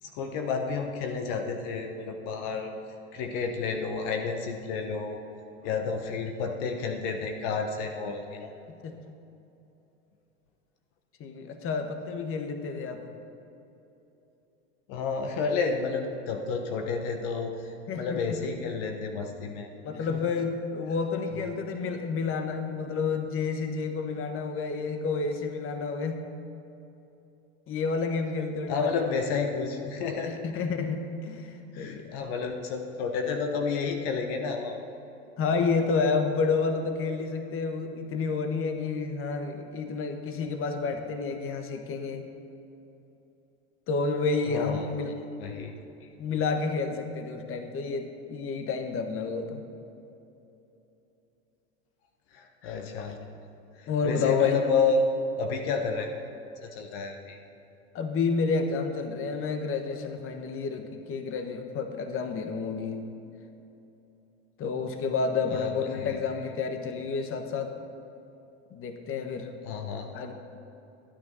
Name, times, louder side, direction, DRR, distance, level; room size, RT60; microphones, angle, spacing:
voice 1, 0.0-2.7 3.1-5.2 5.6-8.5 14.9-19.7 20.1-20.2 21.3-21.6 28.7-30.4 31.7-34.8 44.4-44.9 45.4-45.7 52.3-53.2 53.8-55.1 55.4-56.1 56.6-57.4 65.5-66.2 69.6-70.1, left 4 dB, 60° left, 4 dB, 1.2 m, -31 dB
voice 2, 11.2-13.1 17.9-18.4 19.8-26.2 27.7-29.0 30.3-32.2 35.4-42.3 43.9-45.1 46.2-49.6 52.6-53.1 53.9-54.7 57.9-63.1 64.6-67.7 68.7-69.5 70.1-70.3, left 4 dB, 40° left, 6 dB, 1.3 m, -30 dB
12.5 x 9.6 x 5.6 m, 2.9 s
hypercardioid pair, 90°, 34 cm